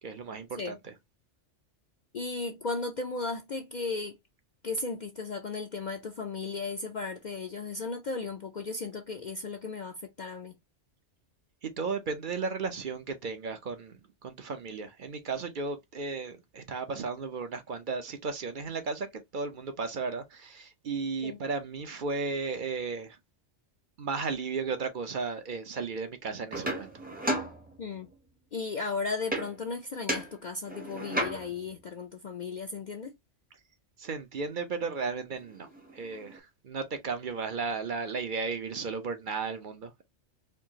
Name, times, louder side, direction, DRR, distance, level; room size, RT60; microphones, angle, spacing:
voice 1, 0.0-0.9 11.6-23.2 24.0-26.9 34.0-35.7 35.9-40.0, right 4 dB, 50° right, 0.7 m, -35 dB
voice 2, 2.1-4.2 4.6-10.5 21.2-21.4 27.8-28.1 28.5-33.1, left 4 dB, 50° left, 0.6 m, -35 dB
sound 1, 26.5-28.1 29.3-29.8 30.1-31.7 35.0-35.1 35.4-36.4, right 1 dB, 10° right, 0.7 m, -35 dB
4.5 x 2.4 x 2.8 m
omnidirectional pair, 1.2 m